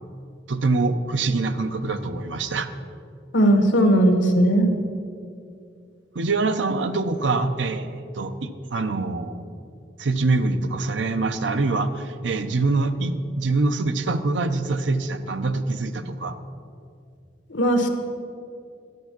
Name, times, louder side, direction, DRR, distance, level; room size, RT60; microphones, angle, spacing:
voice 1, 0.5-2.7 6.1-9.4 10.0-16.4, right 3 dB, 80° right, 10 dB, 0.6 m, -24 dB
voice 2, 3.3-4.7 17.5-17.9, right 1 dB, 85° left, 5 dB, 1.3 m, -18 dB
11.0 x 8.1 x 6.0 m, 2.4 s
head